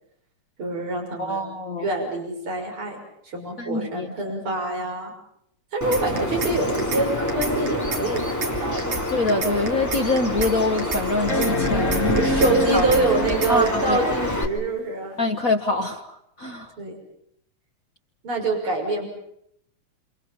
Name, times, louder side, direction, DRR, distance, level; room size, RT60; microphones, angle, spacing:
voice 1, 0.6-1.5 1.8-3.0 3.2-5.1 5.7-9.1 12.2-15.2 16.8-17.0 18.2-19.1, right 2 dB, 45° right, 1 dB, 6.8 m, -25 dB
voice 2, 1.2-1.9 3.6-4.1 9.1-12.2 12.7-12.9 13.5-14.0 15.2-16.7, left 2 dB, 65° left, 4 dB, 0.8 m, -25 dB
Bird vocalization bird call bird song, 5.8-14.4, left 1 dB, 5° left, 2.6 m, -27 dB
sound 1, 5.9-6.5 6.8-7.0 7.3-8.5 8.8-9.0 9.3-10.5 10.8-11.0 11.3-12.5 12.8-13.0 13.3-13.7, right 5 dB, 75° right, 4.5 m, -29 dB
sound 2, 9.1-9.2 9.8-9.9 11.3-13.8 15.5-15.6, left 1 dB, 25° left, 3.5 m, -26 dB
28.0 x 28.0 x 5.5 m, 0.72 s
omnidirectional pair, 3.3 m